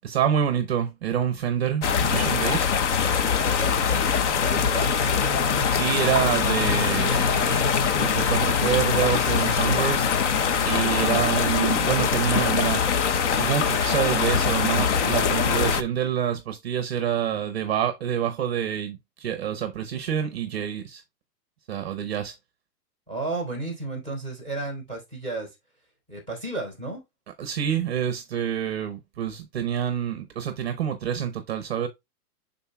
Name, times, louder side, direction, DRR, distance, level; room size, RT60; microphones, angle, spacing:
voice 1, 0.0-2.7 5.7-10.1 10.6-12.8 13.4-21.0 21.7-22.3 27.4-31.9, right 9 dB, 40° right, 0.7 m, -27 dB
sound 1, 1.8-15.8, left 6 dB, 50° left, 0.8 m, -23 dB
voice 2, 3.4-4.1 4.4-5.1 23.1-25.5 26.1-27.0, right 2 dB, 10° left, 3.9 m, -33 dB
11.5 x 4.1 x 2.2 m
hypercardioid pair, 170°, 48 cm